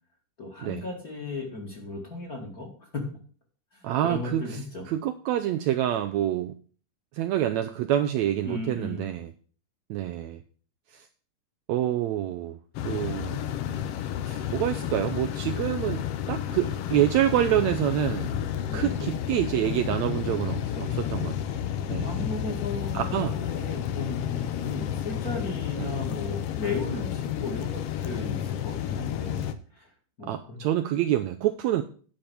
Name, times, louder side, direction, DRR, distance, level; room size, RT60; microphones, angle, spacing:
voice 1, 0.4-3.1 3.7-4.8 8.4-9.1 18.6-19.0 20.7-21.3 22.0-29.4 29.7-29.9 30.2-30.6, left 2 dB, 30° left, 0 dB, 2.2 m, -36 dB
voice 2, 3.8-4.6 4.9-6.5 7.1-9.3 9.9-10.4 10.9-11.1 11.7-12.6 12.8-13.4 14.3-18.4 18.7-21.6 21.9-22.3 22.9-23.3 25.8-25.9 30.3-31.8, right 12 dB, 75° right, 7 dB, 1.7 m, -27 dB
sound 1, 12.7-29.5, left 10 dB, 85° left, 1.3 m, -31 dB
10.5 x 5.1 x 7.0 m, 0.43 s
omnidirectional pair, 3.6 m